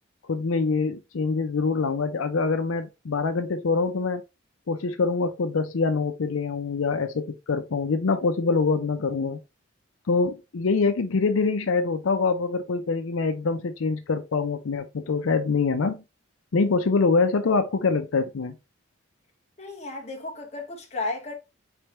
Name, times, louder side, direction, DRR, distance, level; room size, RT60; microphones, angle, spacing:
voice 1, 0.3-4.2 4.7-9.4 10.1-16.0 16.5-18.5, left 4 dB, 85° left, 0.5 m, -25 dB
voice 2, 19.6-21.3, left 2 dB, 35° left, 1.1 m, -33 dB
4.3 x 3.4 x 3.0 m
head